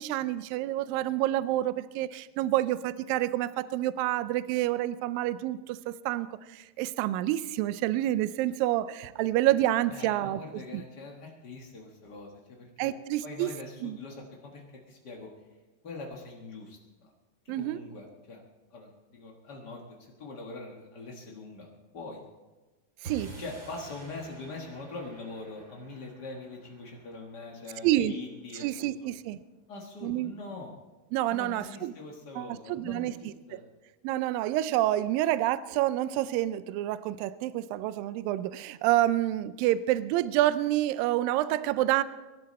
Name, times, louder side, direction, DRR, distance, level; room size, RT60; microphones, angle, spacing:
voice 1, 0.0-6.3 6.5-10.4 10.7-10.8 12.8-13.5 13.8-14.0 17.5-17.8 23.0-23.3 27.8-28.1 28.6-29.4 30.0-30.3 31.1-31.9 32.4-33.6 34.0-42.0, right 14 dB, 80° right, 15 dB, 2.1 m, -28 dB
voice 2, 9.9-12.9 13.2-15.3 15.8-17.1 17.4-18.4 18.7-21.7 21.9-22.2 23.4-28.9 29.7-30.7 31.3-33.6, left 3 dB, 75° left, -1 dB, 0.9 m, -43 dB
sound 1, 23.0-29.4, right 3 dB, 30° right, 2.8 m, -49 dB
24.0 x 12.0 x 4.2 m, 1.2 s
omnidirectional pair, 4.5 m